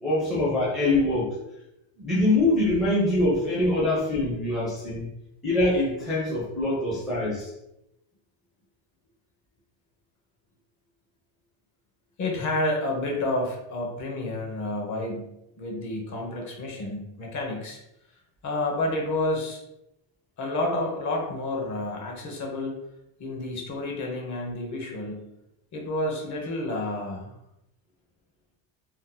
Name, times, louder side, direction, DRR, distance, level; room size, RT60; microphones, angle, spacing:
voice 1, 0.0-1.4 2.0-5.1 5.4-7.5, left 2 dB, ahead, -7 dB, 0.5 m, -24 dB
voice 2, 12.2-17.8 18.4-19.6 20.4-22.7 23.2-25.3 25.7-27.3, left 2 dB, 35° left, 0 dB, 0.7 m, -30 dB
2.7 x 2.1 x 3.7 m, 0.86 s
cardioid pair, 170°, 49 cm